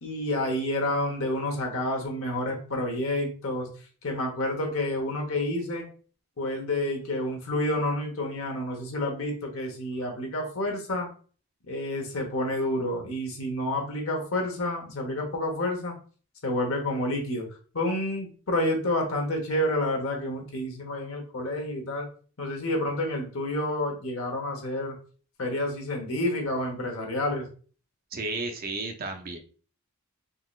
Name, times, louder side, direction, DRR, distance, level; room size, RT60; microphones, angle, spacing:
voice 1, 0.0-3.7 4.0-5.9 6.4-11.1 11.7-15.9 16.4-17.4 17.7-22.1 22.4-25.0 25.4-27.5, left 1 dB, 70° left, 2 dB, 1.0 m, -29 dB
voice 2, 28.1-29.4, right 3 dB, 40° right, 5 dB, 0.6 m, -33 dB
3.8 x 3.0 x 2.3 m, 0.40 s
head